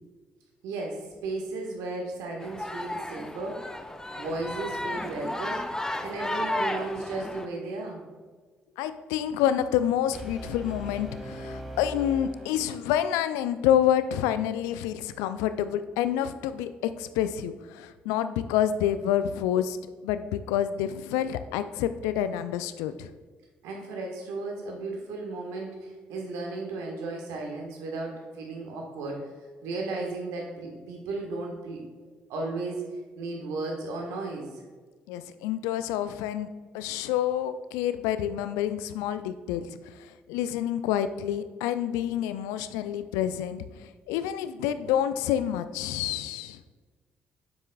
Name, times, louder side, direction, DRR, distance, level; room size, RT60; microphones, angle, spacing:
voice 1, 0.6-3.7 4.2-5.7 6.0-8.0 23.6-29.3 29.6-31.9 32.3-34.6, right 3 dB, 70° right, 1 dB, 1.4 m, -35 dB
sound 1, 2.4-7.5, left 1 dB, 10° left, 0.7 m, -33 dB
voice 2, 8.8-19.8 20.0-23.1 35.1-36.5 36.7-46.6, left 10 dB, 75° left, 12 dB, 0.4 m, -28 dB
Brass instrument, 10.1-13.2, equal, 5° right, 2.2 m, -40 dB
9.2 x 7.5 x 2.3 m, 1.4 s
hypercardioid pair, 45°, 5 cm